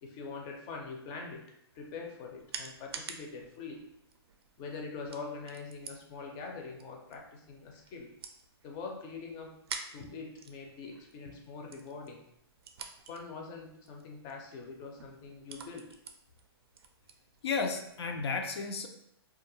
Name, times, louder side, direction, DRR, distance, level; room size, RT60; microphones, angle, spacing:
voice 1, 0.0-1.4 1.7-3.8 4.6-8.1 8.6-9.6 9.9-12.2 13.1-15.9, left 4 dB, 25° left, 1 dB, 0.5 m, -43 dB
sound 1, 1.7-18.1, right 6 dB, 65° right, 0.4 m, -50 dB
voice 2, 17.4-18.9, left 4 dB, 80° left, 5 dB, 0.5 m, -33 dB
2.3 x 2.1 x 3.0 m, 0.76 s
hypercardioid pair, 145°, 14 cm